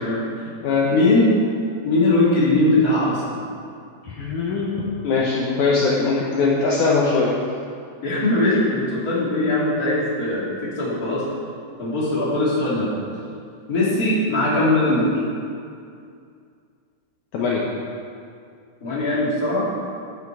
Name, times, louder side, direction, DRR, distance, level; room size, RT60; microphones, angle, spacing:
voice 1, 0.0-0.5 0.9-1.3 1.8-3.4 8.0-11.2 11.8-12.9 13.7-15.2 18.8-19.6, left 2 dB, 30° left, -7 dB, 2.6 m, -20 dB
voice 2, 4.0-7.3 17.3-17.6, left 4 dB, 70° left, -4 dB, 2.2 m, -21 dB
11.0 x 9.5 x 4.7 m, 2.4 s
omnidirectional pair, 4.1 m